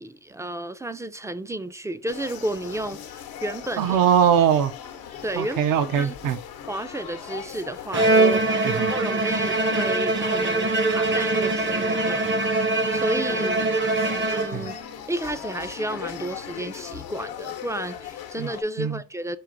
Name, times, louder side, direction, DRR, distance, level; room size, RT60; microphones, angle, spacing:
voice 1, 0.0-4.0 5.2-5.6 5.9-6.3 6.7-12.4 12.9-13.7 14.3-14.8 15.1-19.4, right 1 dB, 10° right, 0.3 m, -32 dB
sound 1, 2.1-18.6, left 9 dB, 85° left, 0.8 m, -39 dB
voice 2, 3.8-4.7 5.4-6.4 8.6-8.9 14.5-14.6 18.4-18.5 18.8-19.0, right 8 dB, 70° right, 0.6 m, -21 dB
Bowed string instrument, 7.9-14.9, right 2 dB, 35° right, 0.7 m, -23 dB
4.6 x 2.5 x 3.8 m
supercardioid pair, 70°, 35 cm